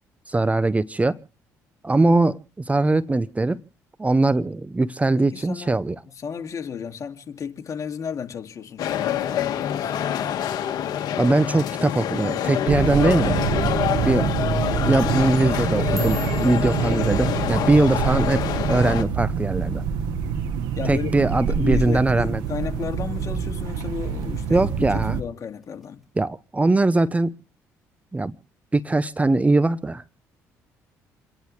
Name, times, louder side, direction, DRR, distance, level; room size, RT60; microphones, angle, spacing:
voice 1, 0.3-1.2 1.8-2.4 2.6-3.6 4.0-6.0 11.2-13.4 14.0-14.3 14.8-19.8 20.8-22.4 24.5-25.2 26.2-27.3 28.1-28.3 28.7-30.0, right 2 dB, 20° right, 0.7 m, -21 dB
voice 2, 5.1-5.8 6.2-9.9 13.8-14.1 16.5-16.6 20.8-26.0, left 7 dB, 50° left, 2.2 m, -33 dB
sound 1, 8.8-19.0, left 10 dB, 65° left, 1.7 m, -26 dB
sound 2, 12.7-25.2, right 6 dB, 80° right, 1.6 m, -26 dB
sound 3, 15.7-19.9 20.2-20.6 21.0-21.4 21.8-22.0 22.6-23.0 23.4-24.2 24.6-25.0 25.8-25.9, equal, ahead, 5.0 m, -45 dB
28.5 x 10.5 x 3.2 m
supercardioid pair, 65°, 7 cm